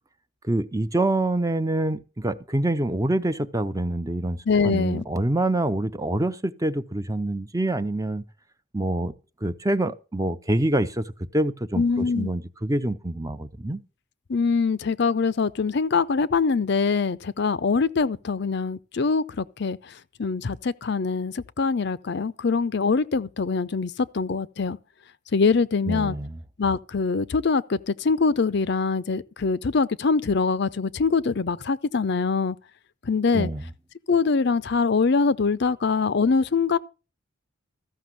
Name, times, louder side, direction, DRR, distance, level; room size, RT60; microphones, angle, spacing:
voice 1, 0.4-4.4 4.6-8.2 8.7-9.1 9.4-11.0 11.3-13.8 25.9-26.4 33.3-33.6, right 1 dB, 15° right, 0.6 m, -26 dB
voice 2, 4.5-5.0 11.8-12.3 14.3-24.8 25.3-26.2 26.6-32.6 33.0-33.5 34.1-36.8, left 4 dB, 55° left, 0.5 m, -23 dB
14.0 x 6.0 x 7.5 m
head